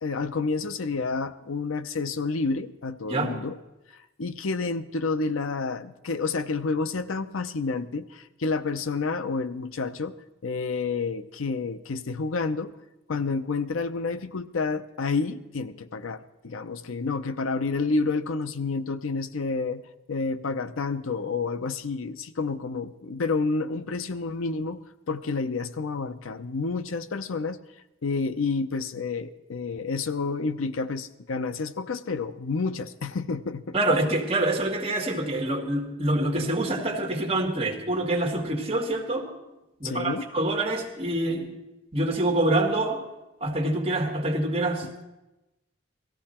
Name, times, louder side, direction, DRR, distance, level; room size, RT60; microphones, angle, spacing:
voice 1, 0.0-3.6 3.9-10.1 10.4-12.7 13.1-19.8 20.1-27.6 28.0-33.8 36.4-36.5 39.8-40.3 44.8-44.9, left 4 dB, 90° left, 12 dB, 0.7 m, -29 dB
voice 2, 33.7-39.3 39.8-41.5 41.9-43.0 43.4-45.0, right 1 dB, 30° right, 0 dB, 1.9 m, -26 dB
18.0 x 14.5 x 4.3 m, 0.98 s
head